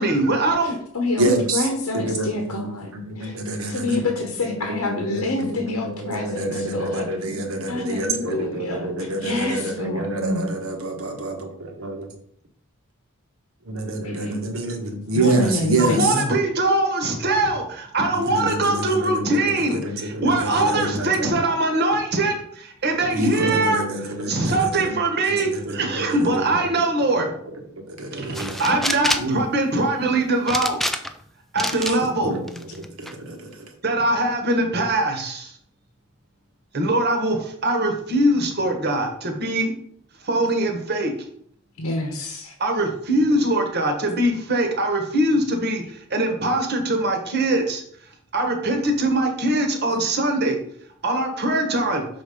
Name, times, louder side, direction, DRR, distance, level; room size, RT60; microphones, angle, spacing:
voice 1, 0.0-0.8 15.8-27.3 28.2-30.8 31.5-32.4 33.8-35.5 36.7-39.7 40.2-41.1 42.6-47.8 48.3-50.6 51.0-52.0, right 2 dB, 50° right, 4 dB, 1.3 m, -22 dB
voice 2, 0.6-3.4 3.7-7.1 7.7-10.1 14.0-14.4 15.1-16.4 22.0-22.1 41.8-42.6, left 2 dB, 85° left, 3 dB, 0.9 m, -28 dB
voice 3, 1.2-1.7 1.9-4.1 4.4-12.1 13.7-16.1 18.1-21.5 23.1-25.0 25.2-26.7 27.1-27.5 27.9-28.6 29.2-29.4 31.7-32.5 32.7-33.6, right 1 dB, 70° right, 4 dB, 1.4 m, -27 dB
sound 1, 28.3-29.4 30.5-31.2 31.6-32.0 32.5-33.1, equal, ahead, 0.3 m, -26 dB
6.3 x 4.1 x 5.0 m, 0.65 s
head